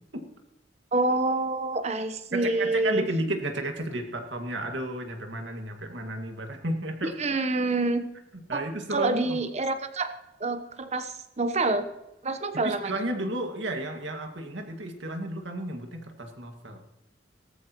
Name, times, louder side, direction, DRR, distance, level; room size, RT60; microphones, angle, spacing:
voice 1, 0.9-3.1 7.2-8.0 8.5-8.7 8.9-10.1 10.4-11.9 12.2-13.0, right 2 dB, 35° right, 9 dB, 1.0 m, -27 dB
voice 2, 2.3-7.2 8.3-9.4 12.6-16.8, right 1 dB, 80° right, 3 dB, 2.0 m, -33 dB
17.5 x 14.0 x 3.1 m, 0.92 s
head